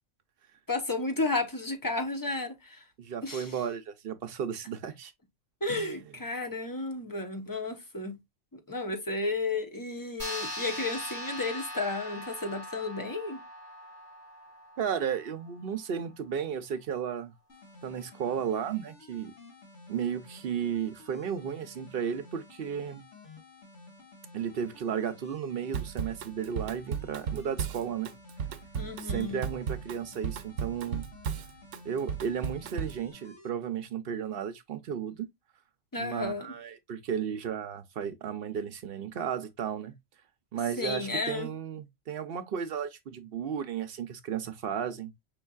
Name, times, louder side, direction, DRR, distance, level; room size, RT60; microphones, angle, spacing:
voice 1, 0.7-2.8 3.2-3.6 5.6-8.2 8.5-13.4 28.8-29.4 35.9-36.5 40.8-41.5, left 3 dB, 20° left, 0.7 m, -33 dB
voice 2, 3.0-5.1 5.7-5.9 14.8-17.3 17.8-19.3 19.9-23.0 24.3-28.1 29.0-31.1 31.8-35.3 36.0-39.9 40.5-45.1, right 8 dB, 60° right, 0.8 m, -34 dB
sound 1, 10.2-15.1, left 1 dB, 40° left, 3.3 m, -40 dB
sound 2, 17.5-33.5, left 2 dB, 75° left, 2.1 m, -53 dB
Drum kit / Drum, 25.7-33.1, right 7 dB, 90° right, 0.9 m, -35 dB
5.4 x 3.8 x 2.3 m
omnidirectional pair, 1.2 m